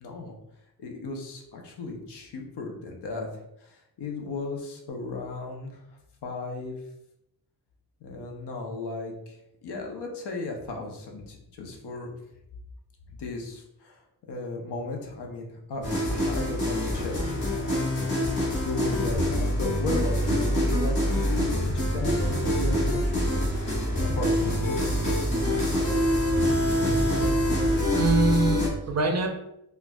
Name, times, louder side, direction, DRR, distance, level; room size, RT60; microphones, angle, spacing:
voice 1, 0.0-0.4 0.8-5.8 6.2-6.8 8.0-12.1 13.1-14.0 14.3-15.8 16.1-17.9 18.6-23.4 23.9-25.2, left 3 dB, 85° left, 1 dB, 0.7 m, -35 dB
sound 1, 15.8-28.7, left 1 dB, 55° left, 1.2 m, -26 dB
Bass guitar, 19.1-28.7, right 2 dB, 25° left, 0.5 m, -31 dB
voice 2, 26.9-27.2 27.9-29.3, right 3 dB, 40° right, 4 dB, 0.4 m, -24 dB
4.4 x 2.3 x 2.2 m, 0.83 s
wide cardioid pair, 145°, 39 cm